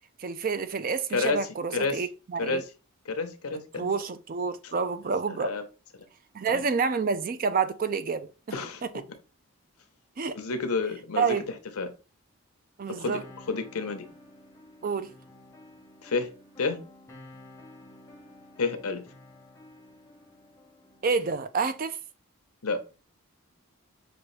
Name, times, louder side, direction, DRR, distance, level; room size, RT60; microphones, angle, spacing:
voice 1, 0.2-2.6 3.8-5.5 6.3-8.3 8.8-8.9 10.2-10.4 11.2-11.5 12.8-13.2 14.8-15.1 21.0-22.0, right 5 dB, 40° right, 0.4 m, -28 dB
voice 2, 1.1-2.1 2.4-2.6 3.1-3.9 5.3-5.6 6.5-6.6 8.5-8.8 10.3-11.4 11.8-11.9 12.9-14.1 16.0-16.3 16.6-16.8 18.6-19.0 22.6-22.8, left 4 dB, 80° left, 0.8 m, -30 dB
sound 1, 13.0-21.1, left 1 dB, 15° left, 0.7 m, -51 dB
6.1 x 2.6 x 3.1 m
head